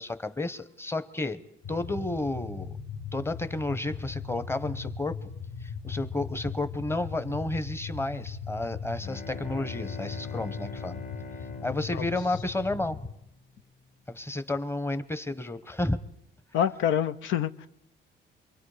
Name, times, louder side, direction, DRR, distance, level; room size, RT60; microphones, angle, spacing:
voice 1, 0.0-1.4 1.7-2.8 3.1-5.2 5.6-11.0 11.6-13.0 14.1-16.0, left 2 dB, 10° left, 13 dB, 1.1 m, -31 dB
sound 1, 1.6-13.1, left 5 dB, 55° left, 1.4 m, -38 dB
Bowed string instrument, 9.0-13.5, left 3 dB, 35° left, 1.8 m, -44 dB
voice 2, 16.5-17.7, left 9 dB, 85° left, 11 dB, 0.7 m, -27 dB
27.5 x 23.5 x 5.0 m, 0.79 s
cardioid pair, 90°, 20 cm